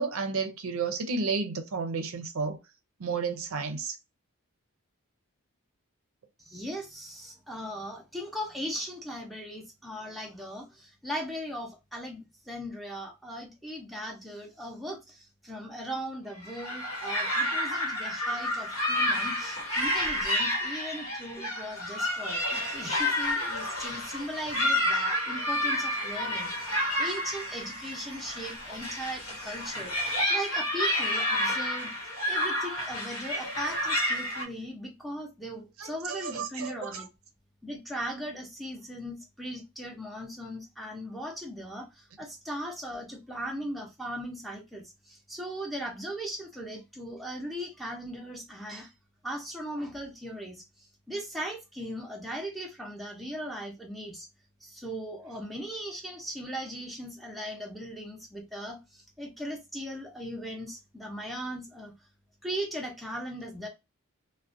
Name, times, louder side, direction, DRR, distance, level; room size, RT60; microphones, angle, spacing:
voice 1, 0.0-2.6 3.0-3.9 35.8-37.0, right 4 dB, 70° right, 0.5 m, -32 dB
voice 2, 6.4-31.9 32.3-37.1 37.6-48.9 49.2-54.3 54.6-61.9 62.4-63.7, equal, ahead, 0.6 m, -38 dB
sound 1, 16.4-34.5, left 1 dB, 75° left, 1.0 m, -30 dB
2.4 x 2.1 x 2.5 m
head